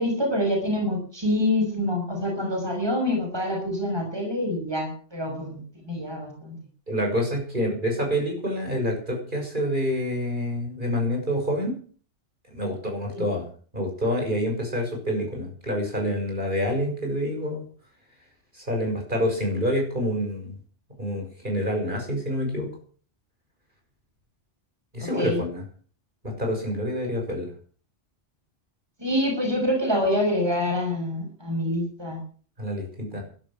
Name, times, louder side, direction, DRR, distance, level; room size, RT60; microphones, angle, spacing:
voice 1, 0.0-5.6 5.8-6.6 13.1-13.2 25.0-25.4 29.0-32.2, left 1 dB, 20° right, 2 dB, 6.0 m, -26 dB
voice 2, 6.9-11.8 12.5-13.4 13.7-17.6 18.5-20.5 21.0-22.7 24.9-25.6 26.2-27.5 32.6-33.2, equal, 45° right, 1 dB, 6.8 m, -27 dB
16.0 x 13.0 x 6.5 m, 0.43 s
omnidirectional pair, 1.2 m